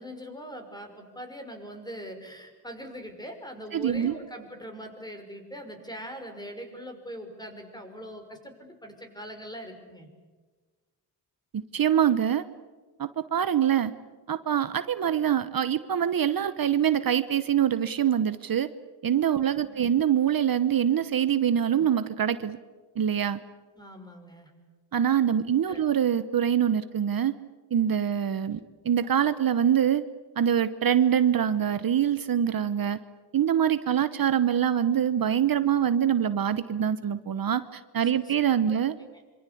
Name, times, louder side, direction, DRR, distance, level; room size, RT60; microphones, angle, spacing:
voice 1, 0.0-10.1 19.6-19.8 23.8-24.5 25.7-25.8 28.5-28.6 38.0-38.3 38.7-39.2, equal, 10° left, 5 dB, 5.8 m, -42 dB
voice 2, 3.7-4.1 11.5-12.4 13.0-13.9 14.3-18.7 19.0-22.6 23.0-23.4 24.9-27.4 27.7-30.0 30.4-33.0 33.3-38.9, right 9 dB, 60° right, 13 dB, 1.0 m, -24 dB
26.0 x 25.0 x 8.5 m, 1.3 s
cardioid pair, 90°, 40 cm